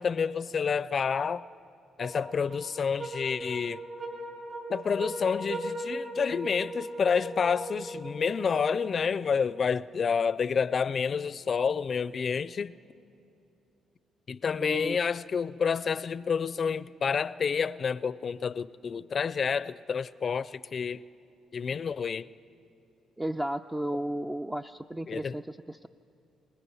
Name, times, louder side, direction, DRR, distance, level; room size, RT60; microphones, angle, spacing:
voice 1, 0.0-1.5 2.0-3.8 4.7-12.8 14.3-21.0 21.5-22.3 25.1-25.3, left 6 dB, 45° left, 0.5 m, -29 dB
sound 1, 2.0-9.5, right 1 dB, 45° right, 5.0 m, -39 dB
voice 2, 14.6-15.0 23.2-25.9, right 1 dB, 10° right, 0.4 m, -34 dB
27.0 x 19.5 x 5.6 m
cardioid pair, 90°, 0 cm